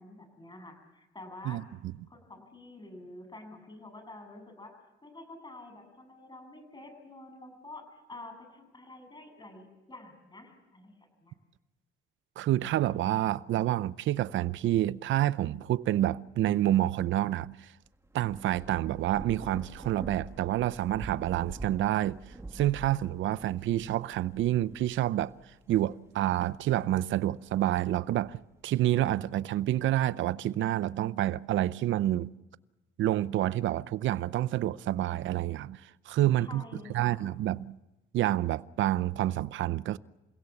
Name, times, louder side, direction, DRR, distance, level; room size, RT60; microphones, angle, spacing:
voice 1, 0.0-1.6 2.1-4.7 5.0-11.3 36.4-37.2, left 2 dB, 20° left, 7.8 m, -48 dB
voice 2, 12.4-17.7 18.1-22.2 22.5-25.3 25.7-28.4 28.6-32.3 33.0-36.6 36.9-37.8 38.1-40.0, right 13 dB, 75° right, 0.7 m, -28 dB
Thunder / Rain, 17.9-26.8 27.3-28.6, right 2 dB, 15° right, 1.8 m, -46 dB
29.0 x 17.0 x 7.1 m
cardioid pair, 90°, 20 cm